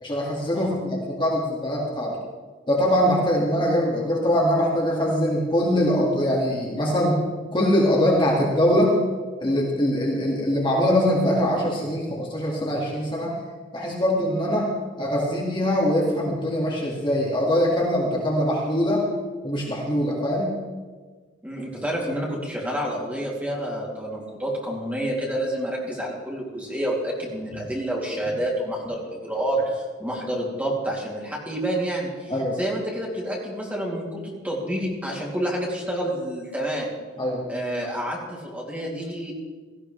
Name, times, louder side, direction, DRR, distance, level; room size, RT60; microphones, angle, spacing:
voice 1, 0.0-2.1 2.7-7.2 7.5-8.9 9.4-13.4 13.7-14.7 15.0-19.1 19.4-20.6 32.3-32.6 37.2-37.4, equal, 25° left, -3 dB, 2.2 m, -22 dB
voice 2, 21.4-32.3 32.6-36.9 37.5-39.3, right 1 dB, 10° right, -4 dB, 2.9 m, -28 dB
17.5 x 14.0 x 3.3 m, 1.4 s
head